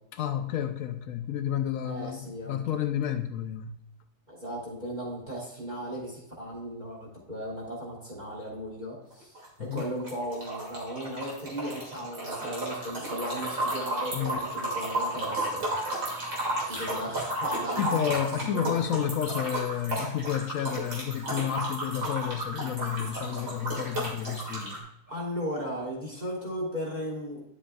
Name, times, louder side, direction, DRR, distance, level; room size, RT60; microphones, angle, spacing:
voice 1, 0.1-3.8 9.6-9.9 14.1-14.4 17.8-24.8, left 9 dB, 70° left, 0.8 m, -30 dB
voice 2, 1.8-2.6 4.3-9.3 9.6-15.9 16.5-18.0 18.4-18.8 25.1-27.4, equal, 25° right, 3.2 m, -36 dB
sound 1, 9.1-24.8, right 1 dB, 85° right, 3.0 m, -33 dB
11.0 x 7.6 x 2.3 m
omnidirectional pair, 1.7 m